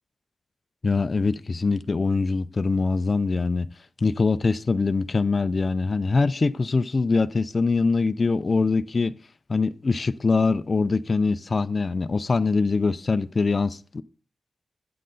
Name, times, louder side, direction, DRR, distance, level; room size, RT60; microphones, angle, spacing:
voice 1, 0.8-3.7 4.0-9.1 9.5-14.0, left 4 dB, 35° left, 0.3 m, -23 dB
8.5 x 7.7 x 3.8 m
wide cardioid pair, 130°, 0 cm